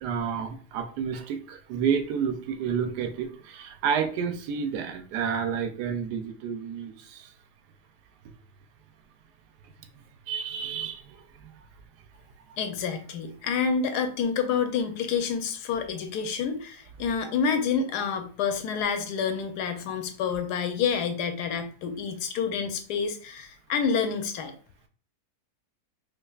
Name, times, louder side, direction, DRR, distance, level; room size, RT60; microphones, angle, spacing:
voice 1, 0.0-7.3 10.3-11.0, right 7 dB, 85° right, 8 dB, 1.2 m, -30 dB
voice 2, 12.6-24.5, left 6 dB, 85° left, 6 dB, 1.2 m, -28 dB
4.8 x 2.5 x 2.3 m, 0.43 s
omnidirectional pair, 1.7 m